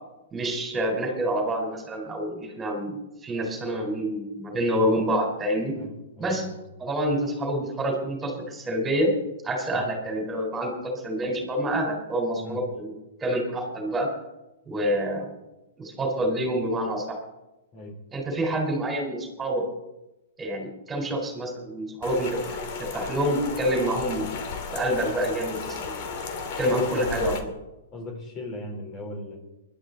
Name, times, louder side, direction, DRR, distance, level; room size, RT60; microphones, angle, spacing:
voice 1, 0.3-2.9 3.2-5.7 6.2-6.4 6.8-9.1 9.4-12.9 13.2-14.1 14.7-15.3 15.8-17.2 18.1-19.6 20.4-24.3 24.7-26.0 26.6-27.3, right 1 dB, 15° right, 2 dB, 4.2 m, -27 dB
voice 2, 5.7-6.6 9.7-9.8 12.4-12.6 17.7-18.0 26.6-27.3 27.9-29.4, left 1 dB, 30° left, 3 dB, 3.9 m, -39 dB
Rain, 22.0-27.4, left 5 dB, 50° left, 2.8 m, -34 dB
20.5 x 12.0 x 4.0 m, 0.96 s
hypercardioid pair, 135°, 0 cm